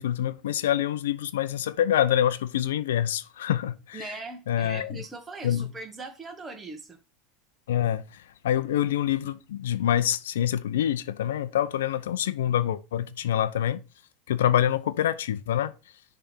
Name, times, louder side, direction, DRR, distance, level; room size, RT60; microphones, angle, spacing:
voice 1, 0.0-4.1 4.5-5.0 5.4-5.7 7.7-13.8 14.3-15.7, left 11 dB, 85° left, 0.6 m, -26 dB
voice 2, 3.9-7.0, right 3 dB, 20° right, 1.5 m, -40 dB
6.6 x 3.4 x 6.1 m
hypercardioid pair, 100°, 0 cm